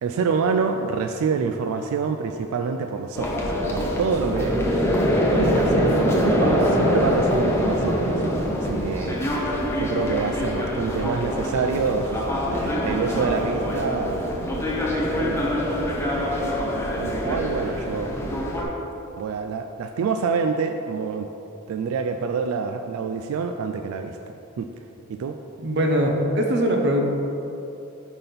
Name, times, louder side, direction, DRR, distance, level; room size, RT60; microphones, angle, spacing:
voice 1, 0.0-4.6 5.3-9.5 9.8-15.5 15.8-18.1 19.2-21.3 21.7-24.7 25.1-25.4, right 5 dB, 90° right, 6 dB, 0.3 m, -27 dB
sound 1, 3.1-18.6, equal, 10° left, 0.6 m, -24 dB
voice 2, 25.6-27.0, equal, 55° right, 2 dB, 0.7 m, -21 dB
5.7 x 4.1 x 5.2 m, 2.9 s
head